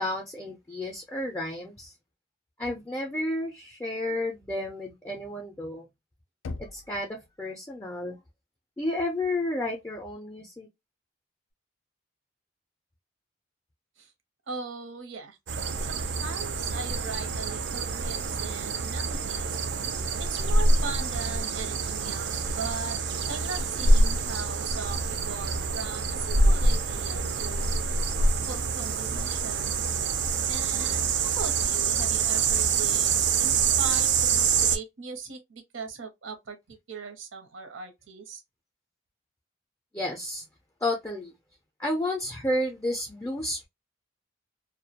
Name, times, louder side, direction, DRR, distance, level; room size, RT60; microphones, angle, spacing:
voice 1, 0.0-1.9 2.6-5.8 6.7-8.2 8.8-10.7 39.9-40.4 40.8-41.3 41.8-43.7, left 1 dB, 15° left, 0.4 m, -31 dB
Knock, 6.4-7.4, left 3 dB, 80° left, 0.4 m, -39 dB
voice 2, 14.5-15.4 15.8-19.6 20.2-23.0 23.2-27.7 28.5-29.8 30.5-38.4, right 5 dB, 85° right, 0.7 m, -39 dB
sound 1, 15.5-34.8, right 4 dB, 60° right, 0.3 m, -26 dB
2.2 x 2.1 x 2.7 m
head